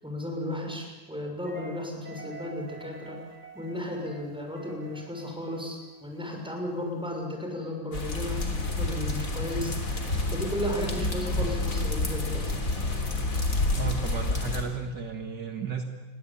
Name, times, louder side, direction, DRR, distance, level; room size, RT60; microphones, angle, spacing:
voice 1, 0.0-3.2 3.5-9.8 10.3-12.4, left 1 dB, ahead, 1 dB, 6.3 m, -34 dB
sound 1, 1.4-6.4, right 4 dB, 20° right, 3.7 m, -48 dB
sound 2, 7.9-14.6, left 2 dB, 45° left, 3.8 m, -29 dB
voice 2, 13.8-15.8, right 5 dB, 60° right, 5 dB, 2.4 m, -33 dB
28.5 x 22.0 x 8.8 m, 1.2 s
omnidirectional pair, 2.1 m